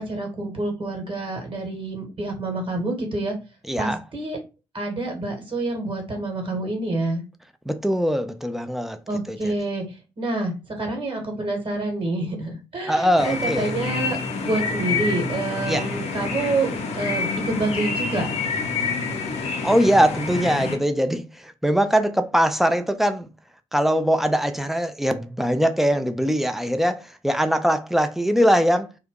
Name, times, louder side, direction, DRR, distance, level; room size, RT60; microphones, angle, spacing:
voice 1, 0.0-3.3 3.8-4.4 4.7-7.2 9.1-18.3, right 2 dB, 35° right, 1.3 m, -27 dB
voice 2, 3.7-4.0 7.7-9.0 9.3-9.5 12.9-13.7 15.7-15.8 19.6-23.3 23.7-28.9, equal, ahead, 0.4 m, -21 dB
sound 1, 13.2-20.8, left 4 dB, 45° left, 0.6 m, -27 dB
2.6 x 2.2 x 3.6 m
figure-of-eight pair, 40°, 14 cm